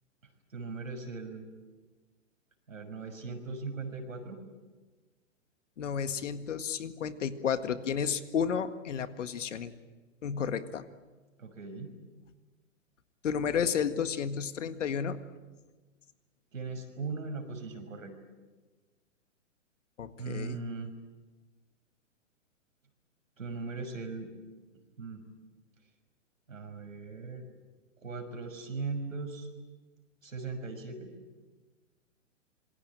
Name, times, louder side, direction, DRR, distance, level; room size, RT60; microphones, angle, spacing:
voice 1, 0.5-1.5 2.7-4.4 11.4-11.9 16.5-18.1 20.2-20.9 23.4-24.3 25.0-25.2 26.5-27.4 28.0-29.5 30.2-31.1, right 4 dB, 85° right, 5 dB, 6.1 m, -39 dB
voice 2, 5.8-9.7 10.2-10.8 13.2-15.2 20.0-20.6, left 7 dB, 70° left, 11 dB, 1.9 m, -32 dB
27.0 x 22.0 x 8.9 m, 1.3 s
hypercardioid pair, 130°, 38 cm